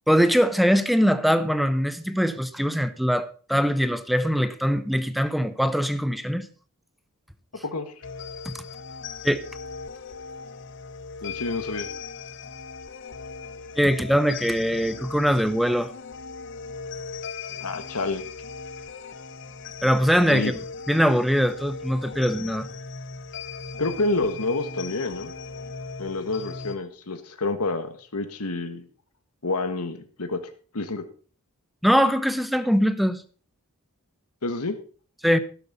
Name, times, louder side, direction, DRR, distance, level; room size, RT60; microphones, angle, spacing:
voice 1, 0.1-6.5 9.2-9.4 13.8-15.9 19.8-20.6 20.9-22.7 31.8-33.2 35.2-35.4, equal, ahead, 0.8 m, -22 dB
voice 2, 7.6-7.9 11.2-11.9 17.5-18.2 20.3-20.5 23.8-25.3 26.0-28.9 29.4-30.4 30.7-31.0 34.4-34.8, left 3 dB, 80° left, 1.5 m, -28 dB
sound 1, 8.0-26.8, left 5 dB, 55° left, 1.0 m, -38 dB
12.5 x 11.0 x 4.1 m
head